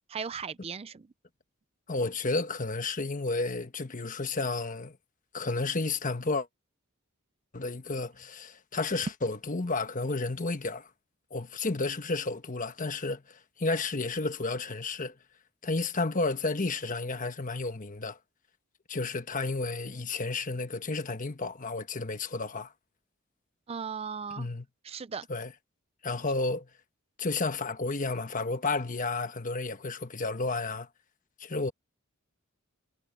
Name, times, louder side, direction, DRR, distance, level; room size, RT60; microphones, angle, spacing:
voice 1, 0.1-1.1 23.7-24.5 24.8-25.3, right 6 dB, 30° right, 0.4 m, -37 dB
voice 2, 1.9-5.0 5.3-6.5 7.5-10.9 11.3-15.2 15.6-18.2 18.9-22.7 24.4-24.7 25.3-25.5 26.0-26.7 27.2-30.9 31.4-31.7, left 3 dB, 40° left, 1.2 m, -32 dB
head